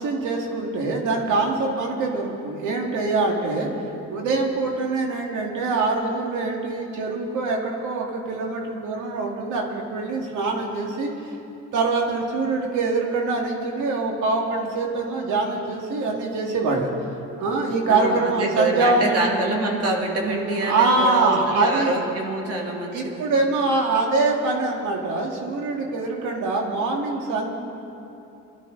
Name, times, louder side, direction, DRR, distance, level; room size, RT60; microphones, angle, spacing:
voice 1, 0.0-3.7 4.1-11.1 11.7-16.9 17.4-19.4 20.7-22.0 22.9-27.5, right 3 dB, 90° right, 0 dB, 2.3 m, -24 dB
voice 2, 17.9-23.3, right 2 dB, 50° right, 0 dB, 2.8 m, -26 dB
23.5 x 12.5 x 4.0 m, 2.8 s
cardioid pair, 90°, 30 cm